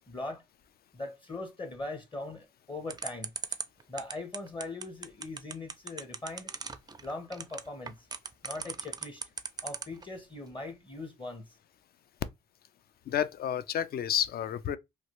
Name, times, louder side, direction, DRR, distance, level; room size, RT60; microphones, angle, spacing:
voice 1, 0.1-0.4 0.9-3.6 3.9-6.5 7.0-7.9 8.4-9.2 9.6-11.6, left 2 dB, 25° left, 0.7 m, -40 dB
sound 1, 2.9-10.0, right 5 dB, 20° right, 0.4 m, -37 dB
voice 2, 13.1-14.8, left 9 dB, 50° left, 0.4 m, -30 dB
3.1 x 2.3 x 2.9 m
cardioid pair, 90°, 20 cm